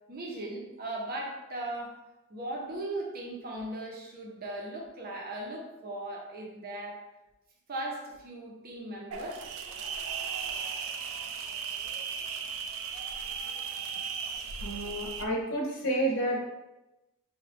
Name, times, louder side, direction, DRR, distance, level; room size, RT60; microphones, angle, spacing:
voice 1, 0.1-2.0 2.3-7.0 7.7-9.4, right 1 dB, 45° right, -1 dB, 0.7 m, -38 dB
sound 1, 9.1-15.2, right 6 dB, 65° right, 0.4 m, -36 dB
voice 2, 14.6-16.4, right 1 dB, 55° left, -2 dB, 0.6 m, -30 dB
4.9 x 2.3 x 3.3 m, 1.0 s
head